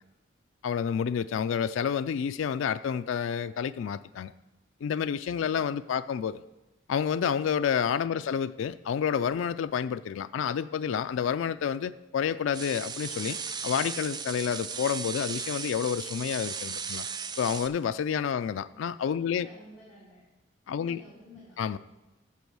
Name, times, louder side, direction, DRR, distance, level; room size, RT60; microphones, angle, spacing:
voice 1, 0.6-4.3 4.8-6.4 6.9-13.4 13.6-17.0 17.4-19.5 20.7-21.0 21.6-21.8, left 7 dB, 80° left, 11 dB, 0.3 m, -29 dB
sound 1, 12.5-17.7, right 6 dB, 20° right, 0.3 m, -36 dB
voice 2, 19.1-20.2 20.7-21.6, left 1 dB, 5° left, -12 dB, 3.0 m, -51 dB
8.3 x 7.1 x 6.2 m, 1.1 s
head